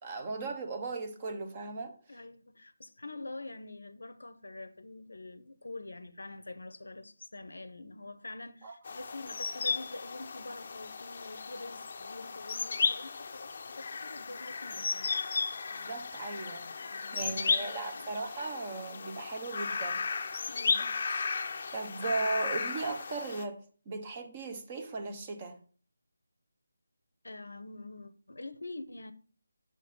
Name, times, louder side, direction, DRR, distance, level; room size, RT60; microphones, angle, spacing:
voice 1, 0.0-1.9 8.6-8.7 15.7-16.7 17.1-20.1 21.7-23.6 23.9-25.6, right 3 dB, 25° right, 0.8 m, -37 dB
voice 2, 2.1-15.3 16.8-18.1 20.5-21.0 27.2-29.1, left 2 dB, 85° left, 0.7 m, -46 dB
sound 1, 8.8-23.4, left 5 dB, 40° left, 0.5 m, -35 dB
6.5 x 3.8 x 5.4 m
figure-of-eight pair, 170°, 0 cm